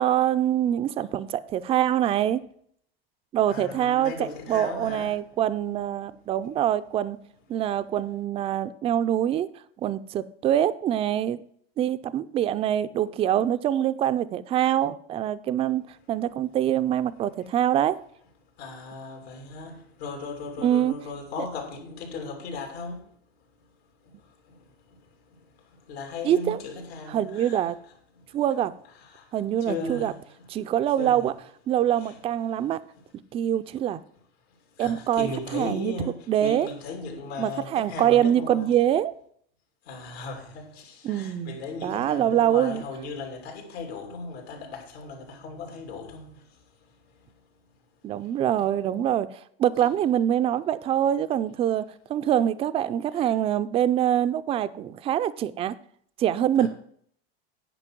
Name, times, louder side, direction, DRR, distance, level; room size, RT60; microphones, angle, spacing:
voice 1, 0.0-2.4 3.3-7.2 7.5-9.5 9.8-11.4 11.8-15.8 16.1-18.0 20.6-20.9 26.2-26.6 27.1-27.8 28.3-28.7 29.3-30.1 30.5-31.3 31.7-32.8 33.3-34.0 34.8-35.9 36.3-36.7 37.4-39.1 41.0-42.8 48.0-51.8 52.1-55.8 56.2-56.7, right 11 dB, 20° right, 0.3 m, -24 dB
voice 2, 3.5-5.2 18.6-23.1 24.0-27.6 28.1-28.4 29.0-30.5 30.8-31.3 32.0-32.2 32.5-32.6 33.4-33.5 34.7-38.8 39.8-46.6 47.1-47.3 48.2-48.3 49.8-49.9 53.1-53.3 56.6-56.7, left 3 dB, 85° left, 3.1 m, -37 dB
9.9 x 5.2 x 5.9 m
supercardioid pair, 130°, 31 cm